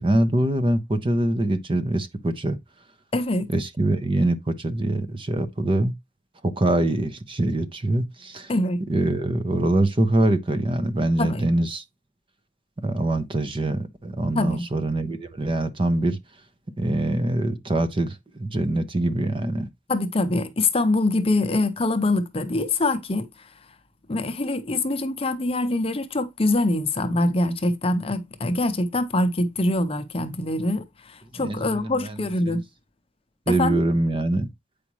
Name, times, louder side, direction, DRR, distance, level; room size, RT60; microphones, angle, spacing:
voice 1, 0.0-2.6 3.5-5.9 6.4-8.5 8.9-11.8 12.8-16.2 16.8-19.7 31.3-32.6 33.5-34.5, right 1 dB, 30° right, 0.7 m, -24 dB
voice 2, 3.1-3.5 8.5-8.8 11.2-11.4 14.3-14.6 19.9-23.3 24.1-30.8 31.1-32.6 33.5-33.8, left 2 dB, 30° left, 0.7 m, -24 dB
8.4 x 5.0 x 3.1 m
head